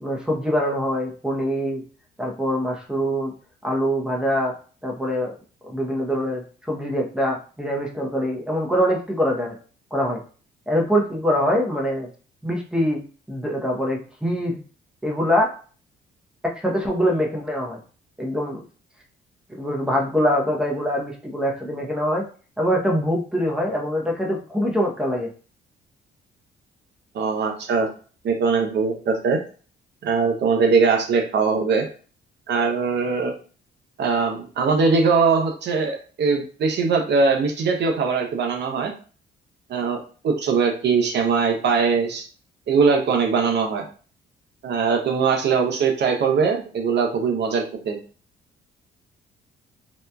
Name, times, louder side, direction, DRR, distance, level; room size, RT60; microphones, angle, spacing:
voice 1, 0.0-1.8 2.2-3.3 3.6-4.5 4.8-5.3 5.7-9.5 9.9-10.2 10.7-12.1 12.4-13.0 13.3-14.6 15.0-15.5 16.6-17.8 18.2-18.6 19.5-22.2 22.6-25.3, equal, 5° right, 0 dB, 0.7 m, -24 dB
voice 2, 27.1-27.9 28.2-29.4 30.0-31.9 32.5-33.3 34.0-38.9 39.7-40.0 40.2-42.2 42.7-43.8 44.6-48.0, right 5 dB, 60° right, 2 dB, 0.7 m, -21 dB
2.8 x 2.3 x 2.2 m, 0.39 s
cardioid pair, 90°, 20 cm